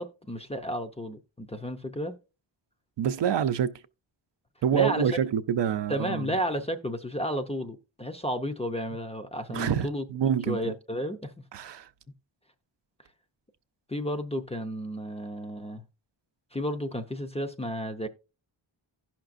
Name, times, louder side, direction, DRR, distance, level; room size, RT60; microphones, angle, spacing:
voice 1, 0.0-2.2 4.7-5.2 5.9-10.1 10.5-11.3 13.9-15.8 16.5-18.1, equal, 15° left, 0.5 m, -32 dB
voice 2, 3.0-3.8 4.6-6.3 9.5-10.7 11.5-11.9, right 8 dB, 65° right, 0.6 m, -27 dB
16.5 x 5.9 x 2.5 m
wide cardioid pair, 165°, 45 cm